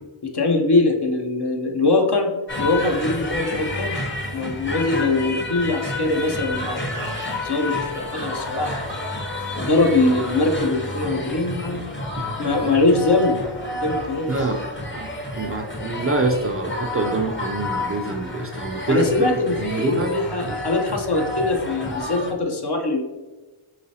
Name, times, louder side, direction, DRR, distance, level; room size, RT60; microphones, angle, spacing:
voice 1, 0.2-4.0 4.3-8.9 9.6-11.8 12.4-13.4 13.7-14.5 18.9-23.0, left 2 dB, 50° left, 2 dB, 0.8 m, -22 dB
sound 1, 2.5-22.3, left 1 dB, 25° left, 0.8 m, -30 dB
voice 2, 14.3-14.6 14.9-15.1 15.3-19.0 19.5-20.1, right 2 dB, 30° right, 3 dB, 0.5 m, -25 dB
4.9 x 3.2 x 2.7 m, 1.2 s
cardioid pair, 40°, 50 cm